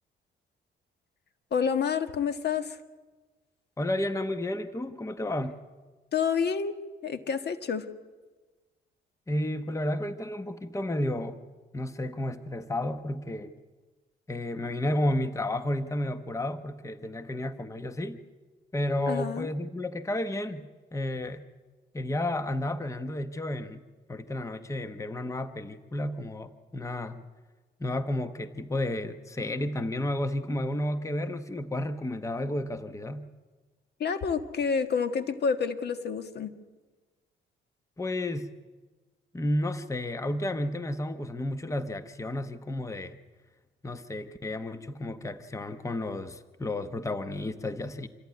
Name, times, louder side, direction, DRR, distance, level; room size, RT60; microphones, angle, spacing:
voice 1, 1.5-2.8 6.1-6.7 7.0-7.9 19.1-19.5 34.0-36.5, left 6 dB, 55° left, 9 dB, 1.5 m, -28 dB
voice 2, 3.8-5.6 9.3-11.4 11.7-13.5 14.3-18.2 18.7-20.6 20.9-21.4 21.9-23.8 24.1-27.2 27.8-33.2 38.0-38.5 39.3-43.2 43.8-48.1, left 1 dB, 15° left, 10 dB, 1.0 m, -32 dB
26.5 x 14.0 x 9.5 m, 1.3 s
cardioid pair, 90°, 20 cm